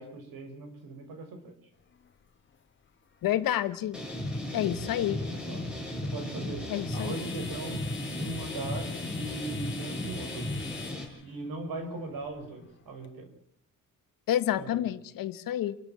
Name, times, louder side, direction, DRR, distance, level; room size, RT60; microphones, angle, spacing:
voice 1, 0.0-1.5 5.1-5.6 6.1-6.7 6.9-7.8 8.1-10.5 11.2-13.3 14.6-14.8, right 2 dB, 85° right, 6.4 m, -39 dB
sound 1, 1.7-13.1, left 6 dB, 35° left, 1.5 m, -48 dB
voice 2, 3.2-4.0 4.5-5.2 6.7-7.2 14.3-15.8, left 12 dB, 85° left, 1.4 m, -29 dB
sound 2, 3.9-11.0, left 1 dB, 5° right, 5.4 m, -35 dB
29.5 x 13.5 x 7.5 m
cardioid pair, 145°, 33 cm